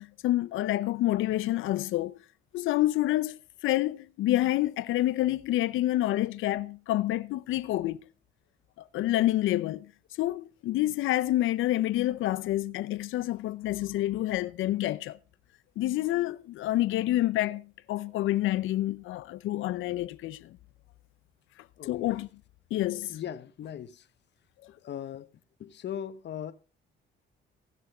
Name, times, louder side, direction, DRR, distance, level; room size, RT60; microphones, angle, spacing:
voice 1, 0.0-2.2 2.5-8.0 8.8-9.9 10.2-15.2 15.8-20.6 21.9-22.3 22.7-23.2, left 15 dB, 85° left, 0.6 m, -28 dB
voice 2, 21.8-22.2 23.1-24.1 24.8-25.3 25.6-26.5, left 9 dB, 60° left, 1.1 m, -39 dB
16.5 x 6.2 x 5.5 m
cardioid pair, 90°, 20 cm